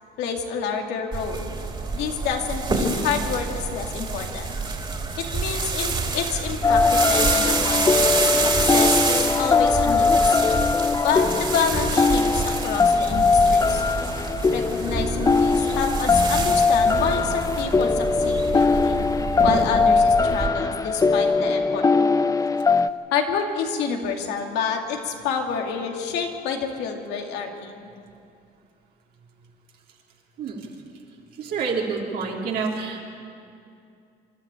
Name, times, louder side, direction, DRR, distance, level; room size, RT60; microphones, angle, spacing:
voice 1, 0.2-1.5 1.9-4.6 5.3-8.3 8.6-10.4 11.0-13.8 14.5-19.0 19.4-21.9 23.1-27.9, left 6 dB, 90° left, 2 dB, 2.5 m, -28 dB
sound 1, 1.1-20.5, right 4 dB, 30° right, 3.0 m, -27 dB
sound 2, 6.6-22.9, left 4 dB, 20° left, 0.5 m, -21 dB
voice 2, 31.4-33.0, right 5 dB, 70° right, -2 dB, 3.6 m, -28 dB
27.0 x 12.5 x 8.9 m, 2.5 s
cardioid pair, 110°, 17 cm